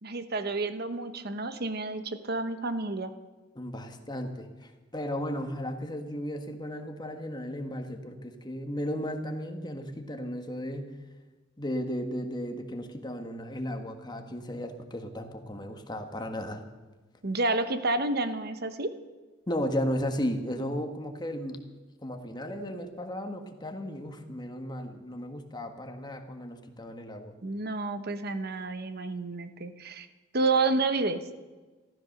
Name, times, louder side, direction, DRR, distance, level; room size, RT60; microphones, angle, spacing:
voice 1, 0.0-3.1 17.2-18.9 27.4-30.1 30.3-31.2, right 3 dB, 55° right, 10 dB, 1.0 m, -30 dB
voice 2, 3.5-10.9 11.6-16.6 19.5-21.6 22.0-27.4, equal, 20° left, 5 dB, 1.5 m, -35 dB
14.5 x 13.5 x 6.6 m, 1.3 s
head